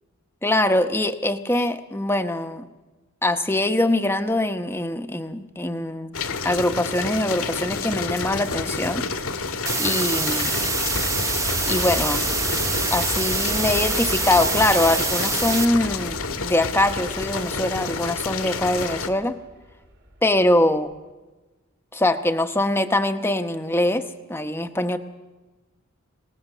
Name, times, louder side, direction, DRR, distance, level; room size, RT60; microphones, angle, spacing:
voice 1, 0.4-2.7 3.2-6.2 6.4-9.1 9.8-10.5 11.7-12.2 12.9-16.2 16.4-19.4 20.2-20.9 21.9-25.0, left 1 dB, 10° left, 7 dB, 1.0 m, -23 dB
sound 1, 6.1-19.1, left 4 dB, 85° left, 1.7 m, -29 dB
sound 2, 9.7-15.7, right 3 dB, 15° right, 0.9 m, -25 dB
Aircraft, 10.0-20.5 20.9-21.0, equal, 55° right, 2.6 m, -37 dB
25.0 x 19.0 x 6.7 m, 1.2 s
head